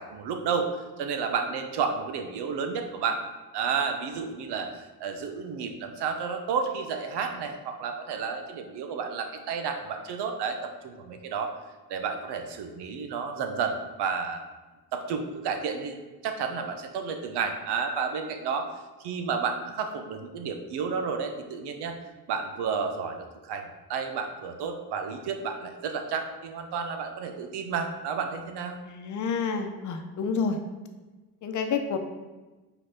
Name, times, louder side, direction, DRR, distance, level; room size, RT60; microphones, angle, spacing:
voice 1, 0.0-3.2 3.5-11.5 11.9-14.4 14.9-16.0 16.2-18.7 19.0-22.0 22.3-28.8, right 5 dB, 90° right, 5 dB, 1.0 m, -31 dB
voice 2, 28.9-30.6 31.4-32.0, left 5 dB, 50° left, 6 dB, 0.8 m, -29 dB
5.5 x 4.1 x 5.8 m, 1.2 s
cardioid pair, 155°, 39 cm